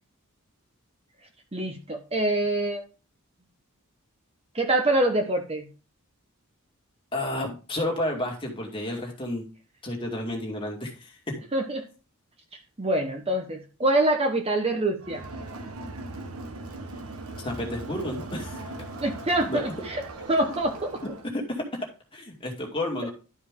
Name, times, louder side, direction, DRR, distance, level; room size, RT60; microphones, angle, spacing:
voice 1, 1.5-2.8 4.5-5.7 11.5-11.8 12.8-15.2 19.0-20.0 20.3-21.0, right 1 dB, 25° right, 4 dB, 1.0 m, -25 dB
voice 2, 7.1-9.4 9.8-11.4 17.4-18.9 19.4-19.6 21.3-21.6 22.1-23.1, left 1 dB, 25° left, 0 dB, 2.1 m, -31 dB
Crowd, 15.0-21.3, right 2 dB, 75° right, 1.2 m, -39 dB
12.0 x 5.0 x 3.7 m, 0.34 s
head